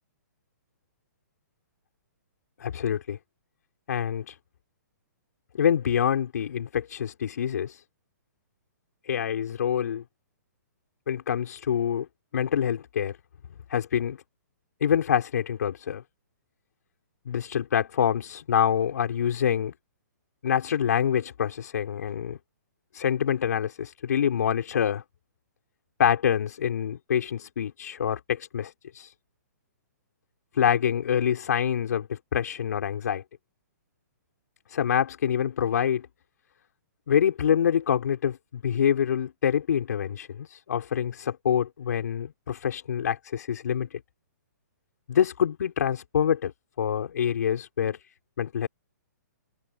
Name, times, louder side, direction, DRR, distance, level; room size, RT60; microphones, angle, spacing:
voice 1, 2.6-3.2 3.9-4.4 5.5-7.8 9.0-10.0 11.1-12.1 12.3-13.2 13.7-14.2 14.8-16.0 17.3-19.7 20.4-22.4 22.9-25.0 26.0-29.1 30.5-33.2 34.7-36.1 37.1-44.0 45.1-46.5 46.8-48.0 48.4-48.7, left 8 dB, 65° left, 6.1 m, -26 dB
hypercardioid pair, 165°, 10 cm